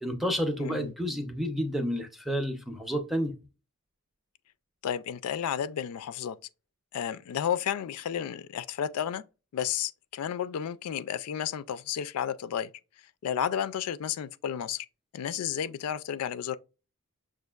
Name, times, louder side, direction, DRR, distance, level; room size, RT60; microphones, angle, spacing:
voice 1, 0.0-3.4, equal, ahead, 0.5 m, -30 dB
voice 2, 0.6-0.9 4.8-6.4 6.9-9.2 9.5-12.7 13.2-14.9 15.1-16.6, left 9 dB, 85° left, 0.3 m, -32 dB
6.1 x 2.4 x 2.3 m
head